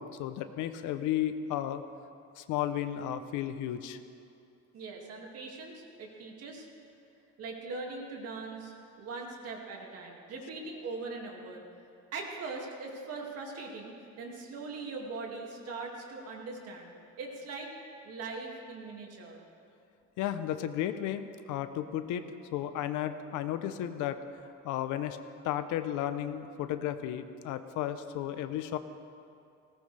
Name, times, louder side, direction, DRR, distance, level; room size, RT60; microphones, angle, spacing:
voice 1, 0.0-1.8 2.4-4.0 20.2-24.2 24.6-25.2 25.4-28.8, left 11 dB, 75° left, 10 dB, 0.8 m, -33 dB
voice 2, 4.7-6.7 7.4-11.6 12.1-17.7 18.0-19.4, right 3 dB, 50° right, 0 dB, 2.3 m, -41 dB
19.0 x 18.0 x 3.4 m, 2.5 s
cardioid pair, 170°, 31 cm